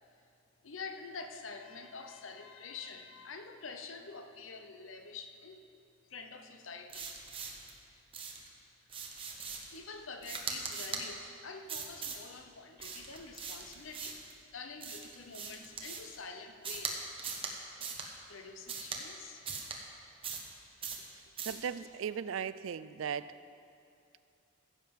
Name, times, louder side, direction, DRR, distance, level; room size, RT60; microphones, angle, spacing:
voice 1, 0.6-5.6 6.1-7.1 9.7-14.2 14.5-17.0 18.3-19.4, left 4 dB, 80° left, 6 dB, 0.8 m, -47 dB
sound 1, 6.9-7.7 8.1-8.5 8.9-9.8 10.2-11.1 11.7-12.2 12.8-14.3 14.8-16.2 16.6-16.9 17.2-17.5 17.8-18.1 18.7-19.0 19.5-19.8 20.2-20.5 20.8-21.1 21.4-21.6, right 5 dB, 25° right, 1.1 m, -40 dB
voice 2, 21.4-23.3, right 7 dB, 80° right, 15 dB, 0.4 m, -37 dB
15.5 x 7.4 x 5.3 m, 2.6 s
head